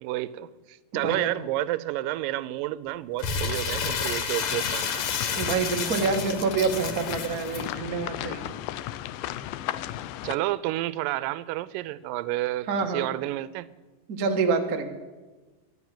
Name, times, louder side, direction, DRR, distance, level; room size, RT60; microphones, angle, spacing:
voice 1, 0.0-4.9 10.2-13.7, right 16 dB, 85° right, 16 dB, 2.3 m, -30 dB
Crumpling crinkling, 3.2-7.6, left 6 dB, 65° left, 1.4 m, -30 dB
sound 1, 4.4-10.4, left 13 dB, 85° left, 2.2 m, -35 dB
voice 2, 5.4-8.4 12.7-13.1 14.1-14.9, right 5 dB, 60° right, 3 dB, 0.9 m, -27 dB
12.0 x 11.0 x 7.5 m, 1.2 s
omnidirectional pair, 3.9 m